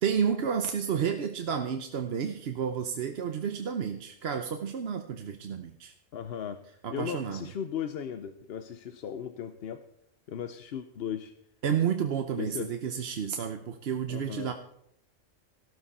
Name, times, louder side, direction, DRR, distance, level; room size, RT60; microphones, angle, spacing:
voice 1, 0.0-5.9 6.8-7.5 11.6-14.5, right 7 dB, 60° right, 5 dB, 1.0 m, -31 dB
voice 2, 6.1-6.6 6.9-9.8 10.3-11.3 12.3-12.7 14.1-14.5, left 8 dB, 60° left, 9 dB, 0.9 m, -36 dB
15.0 x 12.5 x 4.2 m, 0.75 s
omnidirectional pair, 1.3 m